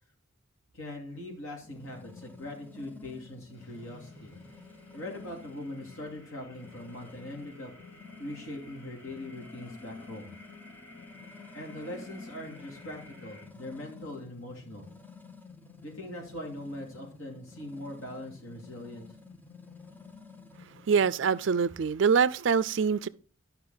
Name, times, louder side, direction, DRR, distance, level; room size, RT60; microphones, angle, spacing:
voice 1, 0.7-4.3 4.9-7.7 8.2-10.3 11.5-14.9 15.8-19.0, left 1 dB, 85° left, 2.8 m, -41 dB
sound 1, 1.6-21.5, left 4 dB, 10° left, 0.7 m, -51 dB
sound 2, 3.5-13.5, left 2 dB, 60° left, 4.6 m, -55 dB
voice 2, 20.9-23.1, right 6 dB, 60° right, 0.4 m, -24 dB
11.5 x 5.7 x 3.9 m
head